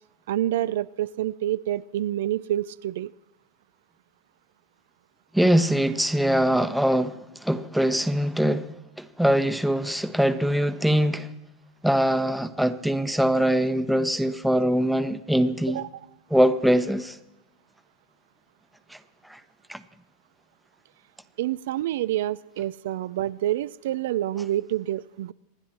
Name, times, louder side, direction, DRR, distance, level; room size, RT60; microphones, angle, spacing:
voice 1, 0.3-3.1 15.7-15.9 21.4-25.3, right 13 dB, 75° right, 0.4 m, -27 dB
voice 2, 5.3-7.2 7.4-11.3 11.8-15.8 16.3-17.2 18.9-19.0 19.3-19.4 19.7-19.8, equal, ahead, 1.0 m, -22 dB
27.0 x 10.5 x 4.3 m
hypercardioid pair, 120°, 0 cm